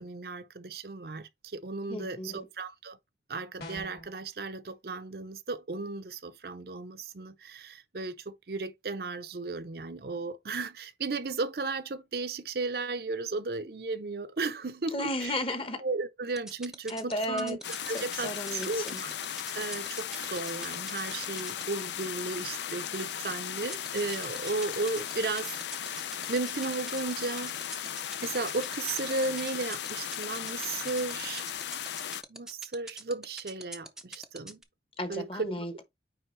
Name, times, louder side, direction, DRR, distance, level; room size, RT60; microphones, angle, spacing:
voice 1, 0.0-3.0 3.3-15.3 15.8-17.6 17.9-19.1 19.5-27.5 28.2-31.5 32.3-34.6 35.1-35.5, right 3 dB, 60° right, 0.6 m, -35 dB
voice 2, 1.9-2.4 14.9-15.8 16.9-17.6 17.9-19.0 35.0-35.8, left 1 dB, 30° left, 1.0 m, -34 dB
sound 1, 3.6-4.1, left 1 dB, 60° left, 2.2 m, -42 dB
sound 2, 16.4-21.6 23.7-34.6, right 1 dB, 5° right, 0.5 m, -42 dB
sound 3, 17.6-32.2, left 10 dB, 75° left, 0.5 m, -37 dB
9.1 x 3.4 x 3.2 m
head